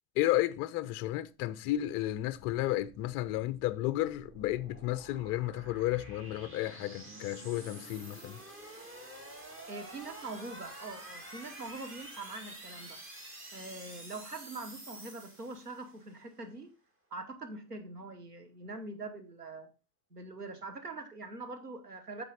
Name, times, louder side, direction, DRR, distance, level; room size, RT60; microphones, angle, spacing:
voice 1, 0.2-8.4, left 15 dB, 30° left, 0.4 m, -32 dB
sound 1, 1.6-16.0, right 1 dB, 25° right, 2.4 m, -49 dB
voice 2, 9.7-13.0 13.5-16.7 17.1-19.7 20.1-22.2, right 3 dB, 85° right, 1.2 m, -43 dB
9.0 x 6.6 x 3.9 m
figure-of-eight pair, 75°, 46 cm